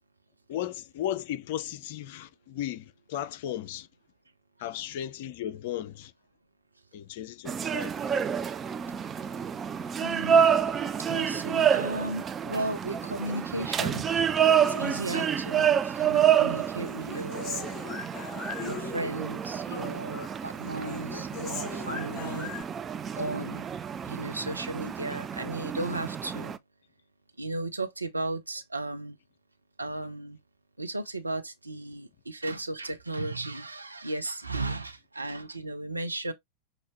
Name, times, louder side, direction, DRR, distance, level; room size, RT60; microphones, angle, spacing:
voice 1, 0.5-3.9 4.6-6.1 6.9-8.0, left 11 dB, 50° left, 0.5 m, -35 dB
sound 1, 7.5-26.6, right 8 dB, 20° right, 0.3 m, -28 dB
voice 2, 10.0-10.5 11.0-14.2 14.7-17.7 18.6-22.5 23.1-23.7 24.0-26.6 27.4-29.2 29.8-30.4 30.8-36.3, right 2 dB, 80° right, 0.6 m, -35 dB
Human voice, 14.6-15.8 16.2-19.4 19.6-20.4 20.6-22.6, left 6 dB, 25° left, 1.1 m, -40 dB
5.7 x 2.7 x 3.0 m
figure-of-eight pair, 90°, 0 cm